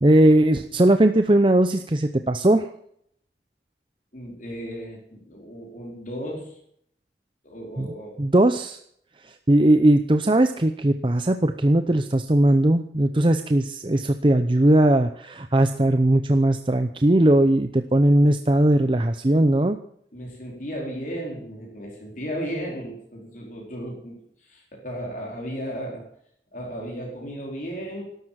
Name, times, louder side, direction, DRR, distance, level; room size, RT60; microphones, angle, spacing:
voice 1, 0.0-2.7 7.8-7.9 8.2-8.8 9.5-19.8, right 1 dB, 30° right, 8 dB, 0.7 m, -19 dB
voice 2, 4.1-6.6 7.4-8.2 20.1-26.0 26.5-28.0, equal, 45° left, -2 dB, 4.4 m, -35 dB
12.5 x 12.0 x 7.5 m, 0.68 s
head